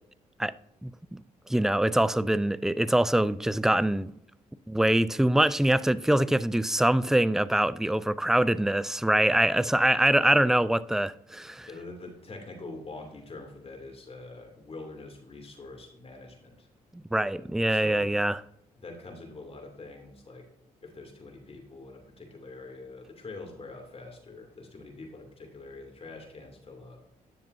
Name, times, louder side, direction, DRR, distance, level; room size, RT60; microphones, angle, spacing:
voice 1, 0.8-1.2 1.5-4.1 4.7-11.7 16.9-18.4, right 1 dB, 5° right, 0.3 m, -24 dB
voice 2, 11.7-16.7 17.3-18.1 18.8-20.4 20.8-27.0, left 3 dB, 40° left, 2.7 m, -44 dB
10.5 x 6.7 x 2.7 m
supercardioid pair, 60°, 15 cm